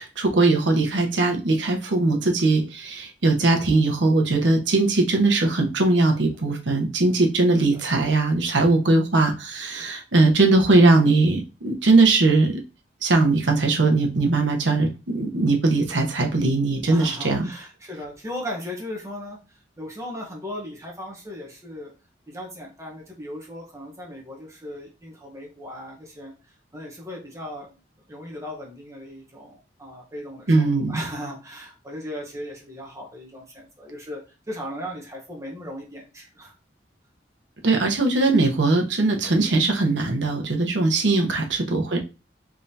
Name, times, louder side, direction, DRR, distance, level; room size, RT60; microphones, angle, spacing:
voice 1, 0.0-12.5 13.0-17.5 30.5-31.0 37.6-42.0, right 2 dB, 80° right, 2 dB, 0.9 m, -20 dB
voice 2, 5.8-6.2 7.5-8.0 16.9-21.9 22.3-26.3 26.7-27.8 28.1-36.5 41.1-41.6, equal, 15° right, -2 dB, 1.0 m, -37 dB
3.6 x 3.3 x 2.7 m, 0.30 s
head